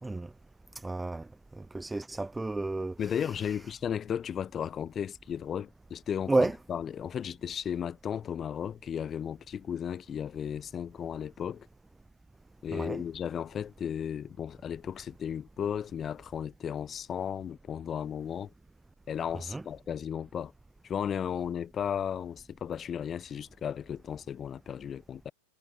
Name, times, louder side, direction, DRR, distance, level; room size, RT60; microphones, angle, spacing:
voice 1, 0.7-1.3 1.5-2.9 6.3-6.5 12.7-13.0 19.5-19.6, right 2 dB, 5° right, 0.7 m, -30 dB
voice 2, 3.0-11.7 12.6-18.5 19.1-20.5 20.8-25.3, left 8 dB, 15° left, 1.1 m, -35 dB
supercardioid pair, 170°, 0 cm